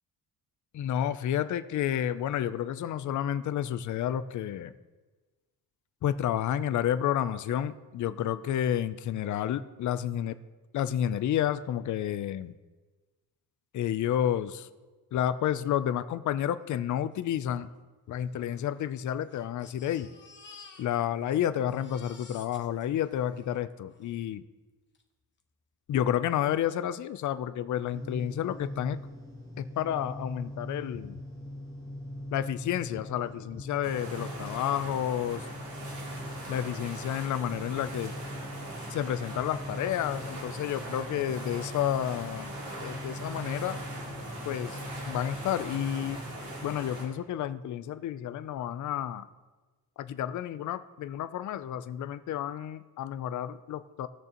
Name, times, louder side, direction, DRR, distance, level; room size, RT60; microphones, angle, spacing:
voice 1, 0.7-4.7 6.0-10.4 10.7-12.5 13.7-14.7 15.1-17.7 18.1-20.1 20.8-24.4 25.9-29.0 29.6-31.2 32.3-35.5 36.5-38.1 38.9-42.5 42.8-43.8 44.4-44.8 45.1-46.2 46.6-49.3 50.0-54.1, left 10 dB, 50° left, 13 dB, 0.5 m, -30 dB
Crying sobbing, 17.2-17.3 17.5-17.6 18.4-21.3 21.5-24.1 24.9-25.0 25.4-25.5, left 4 dB, 30° left, 1.0 m, -53 dB
sound 1, 27.9-46.8, left 1 dB, 20° right, 2.2 m, -42 dB
sound 2, 33.8-47.0, right 1 dB, 80° right, 3.1 m, -41 dB
18.5 x 6.7 x 2.9 m, 1.3 s
cardioid pair, 130°, 39 cm